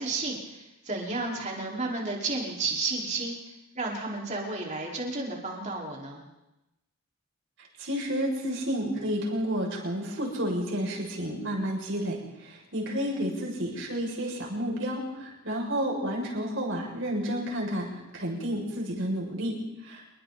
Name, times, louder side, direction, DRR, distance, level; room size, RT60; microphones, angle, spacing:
voice 1, 0.0-3.4 3.7-6.2 13.1-13.3, right 3 dB, 30° right, -2 dB, 5.0 m, -32 dB
voice 2, 7.8-19.6 19.8-20.0, equal, 60° right, -2 dB, 7.0 m, -31 dB
27.5 x 23.0 x 4.3 m, 0.93 s
head